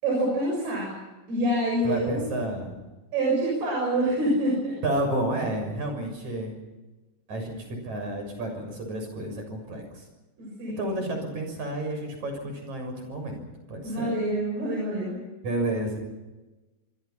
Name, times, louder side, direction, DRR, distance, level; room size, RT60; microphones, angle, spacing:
voice 1, 0.0-0.9 1.3-2.3 3.1-4.8 7.3-7.4 10.4-11.0 13.8-15.2, right 1 dB, 70° right, -2 dB, 8.6 m, -26 dB
voice 2, 1.8-2.7 4.8-6.6 7.3-10.0 10.8-13.4 13.7-14.1 15.4-16.0, right 1 dB, 45° right, 5 dB, 7.9 m, -31 dB
25.5 x 25.0 x 5.9 m, 1.1 s
omnidirectional pair, 4.7 m